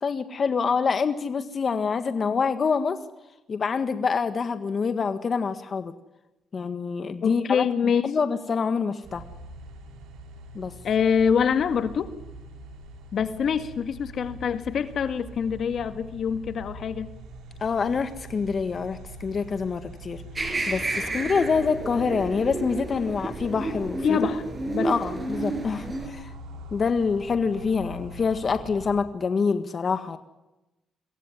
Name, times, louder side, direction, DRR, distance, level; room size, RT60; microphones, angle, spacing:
voice 1, 0.0-3.0 3.5-5.9 6.5-7.7 8.0-9.2 10.5-10.7 17.6-20.2 20.7-24.2 24.8-26.3 26.7-30.2, left 5 dB, 45° left, 9 dB, 1.6 m, -26 dB
voice 2, 7.2-8.0 10.8-12.1 13.1-17.1 24.0-24.5 24.7-24.9, left 7 dB, 60° left, 10 dB, 1.8 m, -25 dB
sound 1, 9.0-29.0, right 1 dB, 80° right, 3.4 m, -43 dB
sound 2, 20.4-26.1, right 2 dB, 25° right, 6.4 m, -31 dB
24.0 x 17.0 x 9.9 m, 0.97 s
cardioid pair, 90°, 0 cm